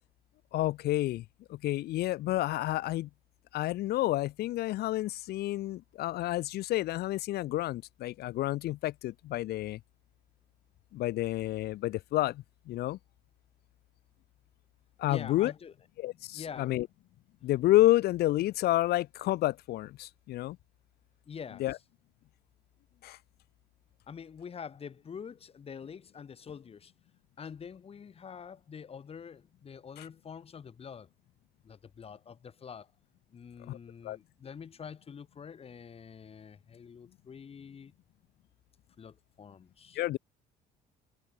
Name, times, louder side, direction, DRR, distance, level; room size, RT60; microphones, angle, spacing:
voice 1, 0.5-1.2 1.5-3.1 3.5-9.8 10.9-13.0 15.0-15.5 16.0-16.9 17.4-20.6 21.6-21.8 23.0-23.2 30.0-30.1 33.7-33.8 34.0-34.2 39.9-40.2, left 16 dB, 70° left, 0.8 m, -29 dB
voice 2, 15.1-15.7 16.3-16.7 21.3-21.6 24.1-26.9 27.4-31.1 31.6-32.9 33.3-37.9 39.0-40.0, left 7 dB, 35° left, 1.9 m, -46 dB
cardioid pair, 110°, 17 cm